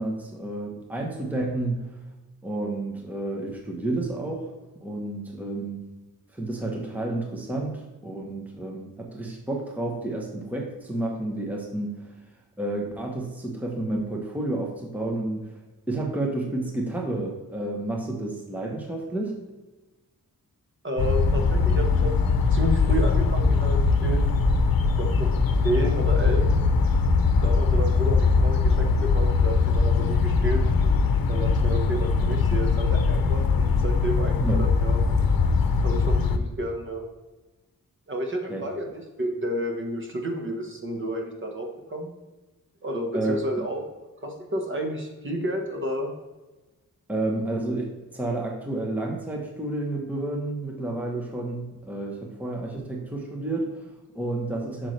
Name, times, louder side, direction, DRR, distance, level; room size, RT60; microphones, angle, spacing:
voice 1, 0.0-2.0 2.4-5.8 6.3-12.1 12.6-15.5 15.9-19.4 34.4-34.6 38.5-38.6 43.1-43.4 47.1-54.9, right 2 dB, 5° right, 0 dB, 1.0 m, -30 dB
voice 2, 20.8-24.3 25.0-25.4 25.6-26.5 27.2-30.6 31.3-35.0 35.8-37.0 38.1-38.9 39.2-42.1 42.8-43.8 44.2-46.1, right 1 dB, 35° right, 2 dB, 1.3 m, -31 dB
sound 1, 21.0-36.4, left 4 dB, 75° left, 0.7 m, -21 dB
8.2 x 6.4 x 3.3 m, 1.2 s
wide cardioid pair, 150°, 35 cm